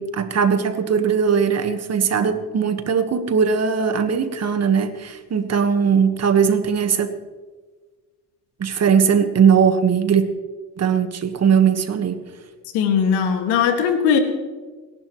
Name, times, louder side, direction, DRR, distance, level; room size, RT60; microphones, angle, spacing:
voice 1, 0.0-7.1 8.6-10.3 10.8-12.2, right 6 dB, 40° right, 8 dB, 1.6 m, -19 dB
voice 2, 12.7-14.2, left 7 dB, 75° left, 5 dB, 2.2 m, -19 dB
28.5 x 11.5 x 3.2 m, 1.4 s
supercardioid pair, 90°, 40 cm